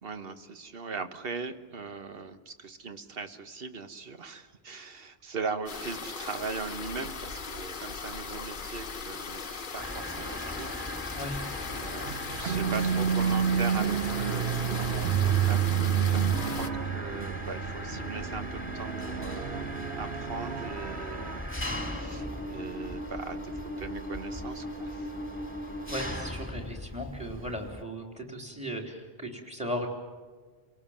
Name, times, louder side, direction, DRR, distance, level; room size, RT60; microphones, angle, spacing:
voice 1, 0.0-10.7 11.7-21.3 21.7-23.5 23.8-25.1, right 4 dB, 60° right, 8 dB, 1.5 m, -40 dB
sound 1, 5.7-16.7, left 5 dB, 55° left, 1.1 m, -38 dB
Mechanisms, 9.8-27.8, left 1 dB, 10° left, 2.5 m, -38 dB
sound 2, 12.1-21.4, right 9 dB, 75° right, 1.1 m, -29 dB
voice 2, 25.9-29.9, equal, 5° right, 2 dB, 3.5 m, -36 dB
29.5 x 18.0 x 7.4 m, 1.5 s
omnidirectional pair, 1.1 m